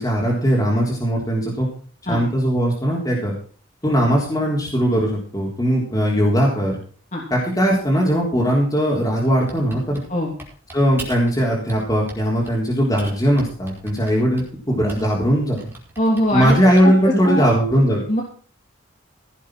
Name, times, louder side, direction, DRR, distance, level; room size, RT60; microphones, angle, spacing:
voice 1, 0.0-1.7 2.1-3.3 3.8-6.8 7.3-10.0 10.7-15.6 16.3-18.0, equal, 20° left, -3 dB, 3.7 m, -19 dB
Typing, 9.5-11.4 11.7-12.6 13.0-15.2 15.6-17.0, right 1 dB, 10° right, 4.3 m, -39 dB
voice 2, 16.0-16.6 16.8-16.9 17.2-17.4 18.1-18.2, equal, 35° left, -1 dB, 2.9 m, -21 dB
16.5 x 7.2 x 6.1 m, 0.42 s
head